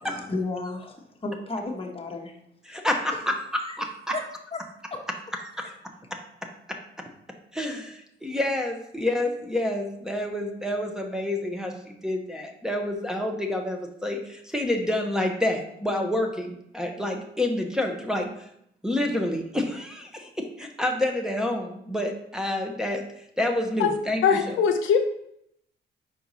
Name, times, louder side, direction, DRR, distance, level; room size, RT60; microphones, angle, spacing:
voice 1, 0.0-2.4 3.6-3.8 4.1-4.2 4.5-4.6 4.9-5.1 5.6-5.7, left 3 dB, 30° left, 2 dB, 1.1 m, -33 dB
voice 2, 2.7-3.3 5.6-5.7 7.5-18.3 18.8-20.3 20.6-23.0 23.4-24.6, left 1 dB, 5° right, 0 dB, 0.9 m, -28 dB
voice 3, 24.2-25.0, left 7 dB, 80° left, 5 dB, 0.7 m, -21 dB
5.0 x 4.6 x 4.1 m, 0.75 s
cardioid pair, 90°, 20 cm